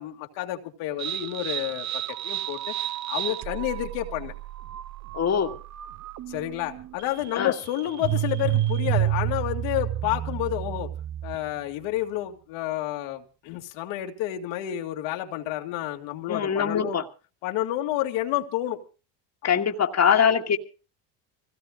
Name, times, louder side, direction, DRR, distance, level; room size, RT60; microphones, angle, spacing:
voice 1, 0.0-1.9 2.2-4.3 6.3-10.9 11.2-17.0 17.4-18.8, left 14 dB, 80° left, 2.4 m, -30 dB
sound 1, 1.0-11.6, right 12 dB, 35° right, 0.7 m, -30 dB
voice 2, 5.1-5.6 7.4-7.5 16.3-17.0 19.4-20.6, left 7 dB, 35° left, 1.9 m, -22 dB
25.5 x 17.0 x 2.5 m
supercardioid pair, 105°, 48 cm